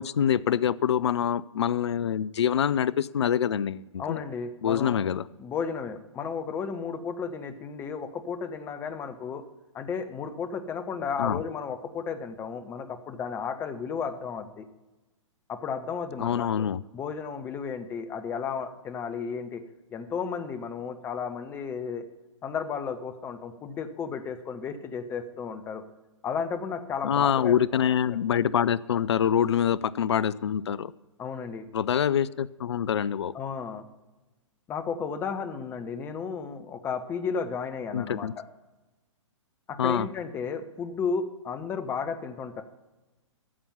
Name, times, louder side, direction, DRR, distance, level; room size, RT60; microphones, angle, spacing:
voice 1, 0.0-4.2 4.6-5.3 11.2-11.4 16.2-16.8 27.0-30.9 31.7-33.3 37.9-38.3 39.8-40.1, left 9 dB, 60° left, 19 dB, 0.4 m, -25 dB
voice 2, 4.0-5.0 5.4-9.4 9.7-14.7 15.5-16.7 16.9-19.6 19.9-22.1 22.4-25.8 26.2-27.8 31.2-31.7 33.3-33.9 34.7-38.3 39.7-42.6, left 6 dB, 15° left, 9 dB, 0.7 m, -33 dB
13.5 x 7.1 x 5.5 m, 1.1 s
figure-of-eight pair, 120°, 16 cm